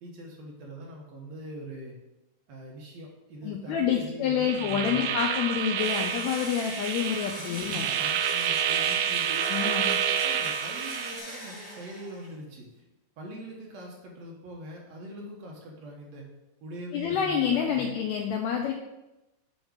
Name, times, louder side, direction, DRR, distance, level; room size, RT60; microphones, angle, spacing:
voice 1, 0.0-1.9 2.5-5.1 7.3-9.5 10.2-12.9 13.2-16.2 16.6-17.9, right 1 dB, 65° right, -1 dB, 1.9 m, -42 dB
voice 2, 3.4-7.9 9.5-10.0 16.9-18.7, left 8 dB, 90° left, 3 dB, 1.6 m, -28 dB
sound 1, 4.4-11.2, right 8 dB, 80° right, 1.7 m, -29 dB
Engine / Drill, 5.7-12.3, equal, 30° right, 2.2 m, -41 dB
8.0 x 3.5 x 5.0 m, 0.97 s
omnidirectional pair, 3.8 m